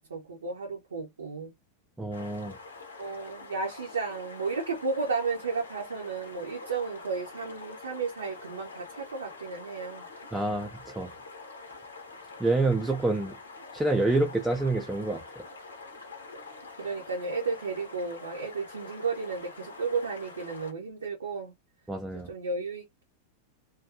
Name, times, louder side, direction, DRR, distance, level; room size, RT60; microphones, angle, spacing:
voice 1, 0.1-1.5 3.0-10.1 16.8-21.5 22.1-23.0, right 4 dB, 70° right, 0.6 m, -33 dB
voice 2, 2.0-2.5 10.3-11.1 12.4-13.3 13.7-15.2 21.9-22.3, right 2 dB, 10° right, 0.4 m, -27 dB
sound 1, 2.1-20.7, left 3 dB, 75° left, 0.8 m, -46 dB
2.4 x 2.3 x 2.6 m
figure-of-eight pair, 90°, 0 cm